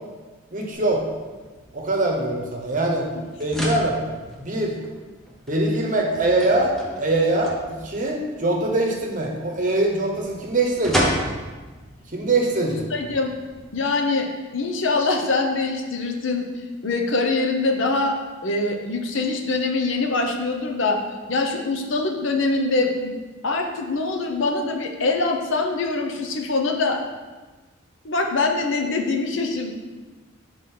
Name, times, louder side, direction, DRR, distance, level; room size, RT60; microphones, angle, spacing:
voice 1, 0.5-1.0 1.7-3.1 3.4-4.0 4.4-4.8 5.5-11.1 12.1-12.8, right 2 dB, 40° right, 0 dB, 0.9 m, -23 dB
sound 1, 0.7-13.6, equal, ahead, 0.7 m, -34 dB
voice 2, 12.9-13.3 13.7-14.3 14.5-16.5 16.8-18.1 18.4-21.0 21.3-23.1 23.4-27.0 28.0-29.7, left 3 dB, 65° left, 3 dB, 0.7 m, -23 dB
6.0 x 4.9 x 3.8 m, 1.3 s
head